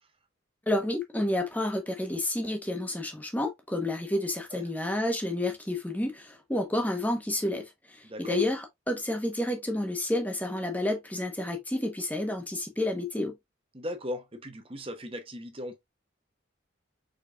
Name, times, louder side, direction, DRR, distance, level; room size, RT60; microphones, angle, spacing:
voice 1, 0.7-13.4, left 1 dB, 10° left, 1.0 m, -30 dB
voice 2, 8.0-8.4 13.7-15.8, left 1 dB, 25° right, 0.9 m, -38 dB
5.1 x 4.1 x 2.3 m
head